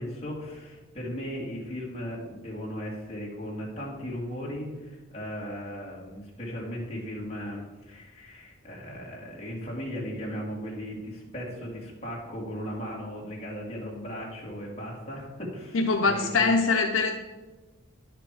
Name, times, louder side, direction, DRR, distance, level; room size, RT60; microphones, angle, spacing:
voice 1, 0.0-16.6, equal, 30° left, -4 dB, 2.5 m, -37 dB
voice 2, 15.7-17.1, left 4 dB, 80° left, 3 dB, 0.7 m, -23 dB
10.5 x 5.9 x 4.9 m, 1.2 s
head